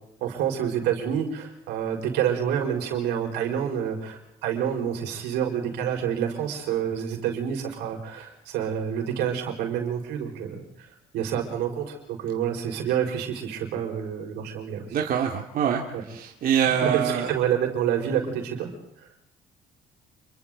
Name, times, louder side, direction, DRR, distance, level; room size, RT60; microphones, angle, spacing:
voice 1, 0.2-10.6 11.1-15.0 15.9-16.0 16.8-18.7, right 9 dB, 90° right, 2 dB, 5.3 m, -28 dB
voice 2, 14.9-15.8 16.1-17.3, right 8 dB, 55° right, 1 dB, 2.3 m, -24 dB
28.5 x 23.5 x 4.0 m, 0.81 s
cardioid pair, 110°, 17 cm